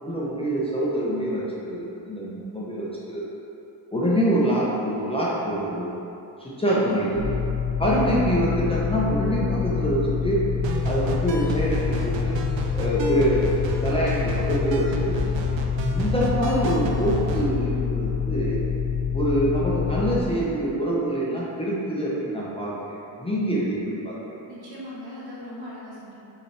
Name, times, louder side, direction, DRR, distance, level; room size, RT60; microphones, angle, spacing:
voice 1, 0.0-3.3 3.9-6.0 6.4-7.3 7.8-10.4 10.8-12.4 12.7-15.2 15.9-18.6 19.1-22.9 23.2-24.4, right 1 dB, 15° left, -7 dB, 0.7 m, -25 dB
voice 2, 6.6-7.4 24.5-26.2, equal, 60° right, -7 dB, 1.4 m, -39 dB
sound 1, 7.2-20.2, left 7 dB, 70° left, 0.7 m, -27 dB
sound 2, 10.6-17.5, right 3 dB, 80° right, 0.6 m, -31 dB
5.1 x 3.0 x 3.3 m, 2.9 s
cardioid pair, 95°, 44 cm